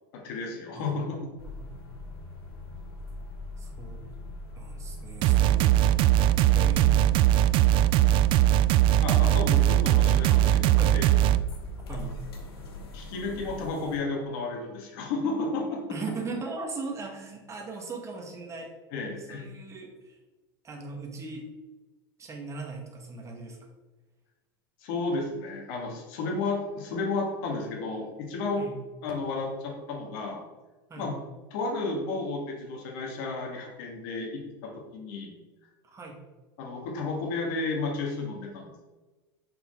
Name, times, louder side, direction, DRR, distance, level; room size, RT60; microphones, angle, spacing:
voice 1, 0.1-1.2 9.0-11.1 11.9-12.1 12.9-15.8 18.9-19.5 24.8-28.7 29.0-30.4 31.0-31.1 31.5-35.4 36.6-38.8, left 3 dB, 60° left, 0 dB, 2.2 m, -32 dB
voice 2, 0.7-1.3 1.6-1.7 3.6-4.0 4.6-5.8 6.5-7.2 10.8-11.0 11.9-12.1 15.9-18.7 19.2-20.2 20.6-21.5 22.2-23.6 28.6-28.8 30.9-31.1 35.9-36.2, right 3 dB, 25° right, 1 dB, 1.9 m, -39 dB
sound 1, 1.4-14.0, left 1 dB, 85° left, 1.5 m, -42 dB
sound 2, 5.2-11.4, right 13 dB, 45° right, 0.3 m, -20 dB
6.4 x 5.6 x 4.0 m, 1.2 s
hypercardioid pair, 110°, 12 cm